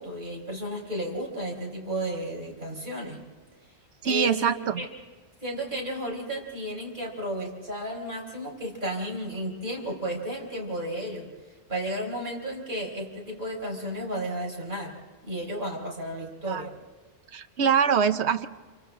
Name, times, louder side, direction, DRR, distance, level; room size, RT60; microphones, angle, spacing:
voice 1, 0.0-3.2 4.0-4.9 5.4-11.3 11.7-14.9 15.2-16.7, right 1 dB, 45° right, -1 dB, 5.0 m, -33 dB
voice 2, 4.0-4.8 16.5-16.7 17.3-18.5, right 7 dB, 70° right, 10 dB, 1.1 m, -24 dB
28.5 x 24.0 x 3.8 m, 1.4 s
omnidirectional pair, 1.2 m